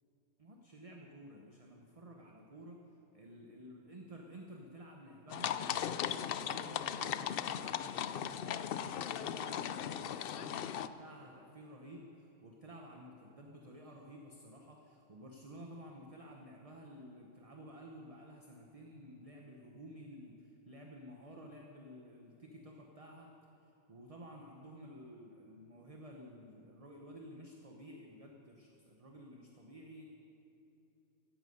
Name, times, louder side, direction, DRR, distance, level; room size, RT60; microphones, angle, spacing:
voice 1, 0.4-2.8 3.1-23.3 23.6-30.0, equal, 25° right, 1 dB, 1.0 m, -53 dB
sound 1, 5.3-10.9, left 9 dB, 85° left, 0.5 m, -37 dB
15.5 x 15.0 x 5.4 m, 3.0 s
omnidirectional pair, 1.5 m